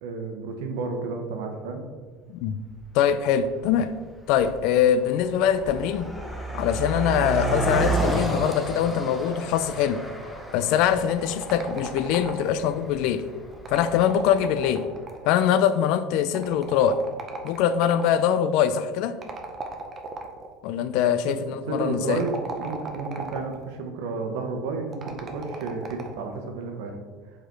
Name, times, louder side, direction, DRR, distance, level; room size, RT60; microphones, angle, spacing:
voice 1, 0.0-1.8 21.1-21.3 21.7-26.9, right 4 dB, 80° right, 1.0 m, -31 dB
Car passing by, 2.7-2.8 3.6-3.8 4.1-14.5, right 2 dB, 5° left, 0.7 m, -31 dB
voice 2, 2.9-4.0 4.3-6.1 6.5-10.1 10.5-13.3 13.7-14.9 15.3-17.0 17.4-19.2 20.6-22.2, left 9 dB, 65° left, 0.4 m, -23 dB
sound 1, 11.1-12.7 13.5-15.4 16.3-18.2 19.2-20.5 22.1-23.7 24.9-26.3, right 3 dB, 30° right, 0.7 m, -37 dB
5.1 x 4.3 x 4.5 m
cardioid pair, 145°, 0 cm